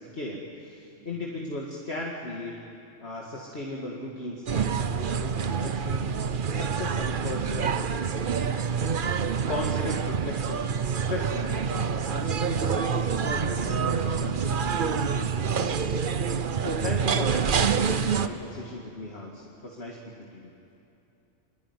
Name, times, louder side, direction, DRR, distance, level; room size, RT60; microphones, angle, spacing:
voice 1, 0.0-2.5 3.0-6.1 6.5-8.3 9.5-10.7 10.9-16.0 16.6-20.0 20.3-20.5, left 1 dB, 55° left, -2 dB, 2.3 m, -37 dB
voice 2, 0.9-1.3 3.2-3.8 8.1-8.7 14.4-16.3, left 1 dB, 35° left, -1 dB, 5.2 m, -56 dB
sound 1, 4.5-18.3, right 6 dB, 50° right, 0.9 m, -27 dB
25.5 x 22.0 x 9.7 m, 2.8 s
omnidirectional pair, 1.3 m